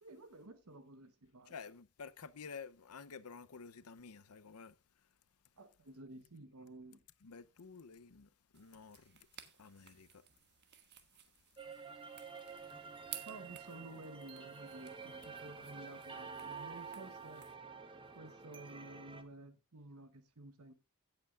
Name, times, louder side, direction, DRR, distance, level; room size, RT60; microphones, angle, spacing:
voice 1, 0.0-1.5 5.6-7.0 13.3-17.4 18.1-20.7, right 2 dB, 80° right, 1.1 m, -53 dB
voice 2, 1.5-4.7 7.2-9.2 9.6-10.1, left 5 dB, 85° left, 0.7 m, -51 dB
sound 1, 8.5-17.5, right 11 dB, 50° right, 1.2 m, -56 dB
sound 2, 11.6-19.2, right 5 dB, 25° right, 1.1 m, -49 dB
16.5 x 8.1 x 2.5 m
head